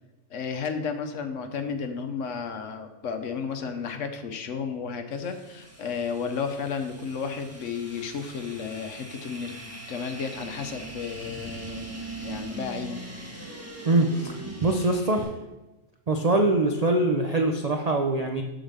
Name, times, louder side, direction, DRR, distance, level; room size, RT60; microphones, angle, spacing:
voice 1, 0.3-13.0, left 6 dB, 60° left, 7 dB, 1.0 m, -33 dB
sound 1, 5.1-15.2, right 2 dB, 10° right, 1.2 m, -41 dB
voice 2, 13.9-15.3 16.1-18.4, right 2 dB, 70° right, 4 dB, 0.3 m, -23 dB
7.8 x 4.0 x 6.6 m, 1.1 s
omnidirectional pair, 1.5 m